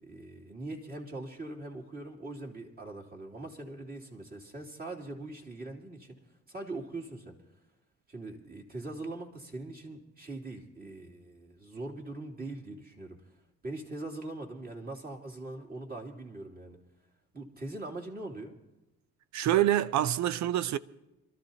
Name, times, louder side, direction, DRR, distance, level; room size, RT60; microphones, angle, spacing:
voice 1, 0.0-6.2 6.5-7.4 8.1-13.3 13.6-16.8 17.3-18.5, right 2 dB, 30° right, 3.0 m, -42 dB
voice 2, 19.3-20.8, right 12 dB, 70° right, 0.6 m, -26 dB
26.5 x 13.5 x 2.9 m
cardioid pair, 90°, 30 cm